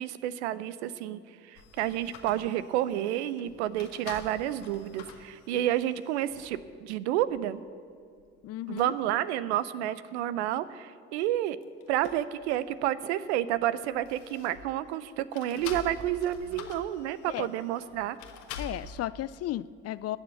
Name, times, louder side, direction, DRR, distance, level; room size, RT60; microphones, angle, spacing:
voice 1, 0.0-7.6 8.7-11.6 11.9-18.2, right 12 dB, 75° right, 16 dB, 0.7 m, -30 dB
sound 1, 1.5-6.7 7.3-7.4 8.0-8.4 8.7-8.9 11.5-13.0 13.3-14.8 15.3-18.9, left 5 dB, 75° left, 1.3 m, -47 dB
voice 2, 8.4-8.9 17.3-17.5 18.6-20.2, left 14 dB, 45° left, 18 dB, 0.5 m, -34 dB
20.5 x 7.1 x 8.0 m, 2.2 s
hypercardioid pair, 55°, 34 cm